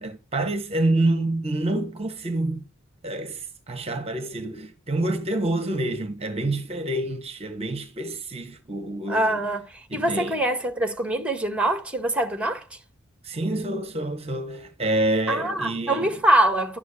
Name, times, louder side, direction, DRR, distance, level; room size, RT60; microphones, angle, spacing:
voice 1, 0.0-2.6 3.0-9.4 9.9-10.4 13.2-16.2, right 2 dB, 30° right, 1.1 m, -27 dB
voice 2, 9.1-12.6 15.3-16.8, right 1 dB, 5° right, 1.6 m, -24 dB
11.5 x 7.7 x 8.5 m
head